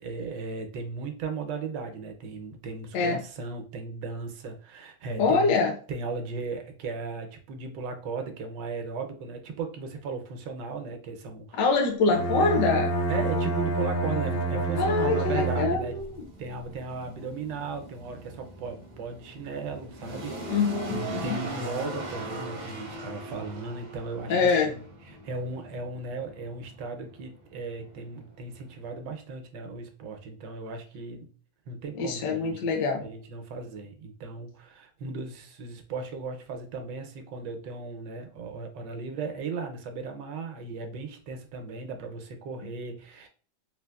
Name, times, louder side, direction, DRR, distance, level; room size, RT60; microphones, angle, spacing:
voice 1, 0.0-5.6 5.9-11.7 13.1-16.0 16.4-31.3 31.7-32.7 33.0-43.3, right 4 dB, 80° right, 5 dB, 1.3 m, -36 dB
voice 2, 5.2-5.7 11.5-12.9 14.8-15.8 16.2-16.3 20.5-21.4 24.3-24.7 32.0-33.0, left 4 dB, 75° left, 2 dB, 1.2 m, -24 dB
Bowed string instrument, 12.0-16.1, right 2 dB, 90° left, 1.6 m, -28 dB
sound 1, 14.7-29.2, right 2 dB, 50° right, 0.5 m, -40 dB
3.9 x 2.4 x 2.2 m, 0.42 s
omnidirectional pair, 1.9 m